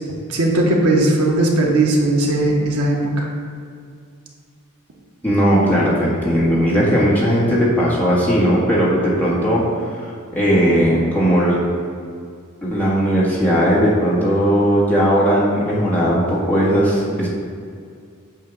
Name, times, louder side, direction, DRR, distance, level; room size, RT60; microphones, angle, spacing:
voice 1, 0.3-3.3, right 2 dB, 90° right, -1 dB, 1.1 m, -17 dB
voice 2, 5.2-11.6 12.6-17.3, equal, 5° left, -7 dB, 1.6 m, -17 dB
8.3 x 2.8 x 6.1 m, 2.2 s
head